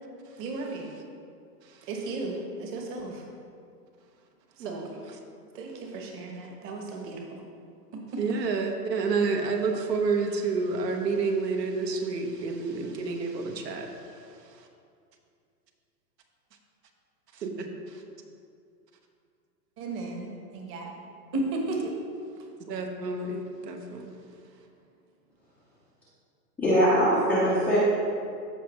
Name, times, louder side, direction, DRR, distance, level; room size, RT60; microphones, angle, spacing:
voice 1, 0.4-0.9 1.9-3.2 4.6-4.7 5.5-7.4 19.8-20.9 21.3-21.9, right 2 dB, 25° right, 1 dB, 1.1 m, -34 dB
voice 2, 8.2-14.7 17.3-18.0 22.6-24.2, right 4 dB, 75° right, 3 dB, 1.3 m, -30 dB
voice 3, 26.6-27.8, equal, 5° left, -12 dB, 0.4 m, -22 dB
14.0 x 4.8 x 3.1 m, 2.3 s
hypercardioid pair, 140°, 50 cm